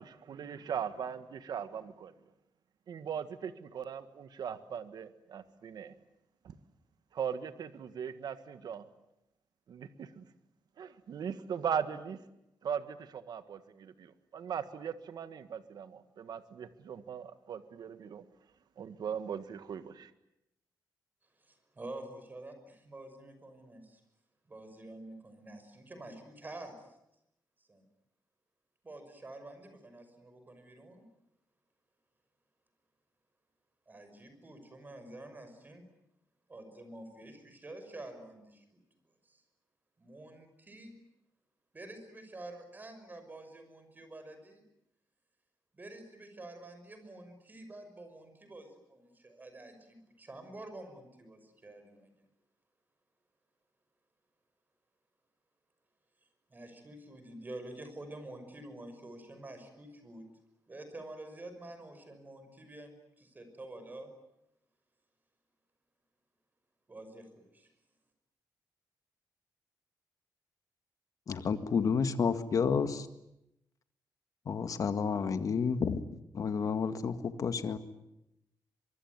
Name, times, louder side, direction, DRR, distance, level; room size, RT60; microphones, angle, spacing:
voice 1, 0.0-2.1 2.9-5.9 6.4-6.5 7.1-8.8 9.7-10.2 10.8-12.2 12.6-18.2 18.8-20.1, right 7 dB, 70° right, 11 dB, 1.6 m, -39 dB
voice 2, 21.4-24.0 24.5-26.9 27.7-27.8 28.8-31.1 33.9-35.8 36.5-38.8 39.3-39.4 40.0-41.0 41.7-44.6 45.7-52.1 56.5-60.3 60.7-64.1 66.9-67.7, right 2 dB, 25° right, 7 dB, 5.9 m, -48 dB
voice 3, 71.3-73.1 74.5-76.0 76.3-77.8, left 6 dB, 50° left, 10 dB, 1.9 m, -30 dB
24.0 x 24.0 x 9.7 m, 0.85 s
wide cardioid pair, 130°, 7 cm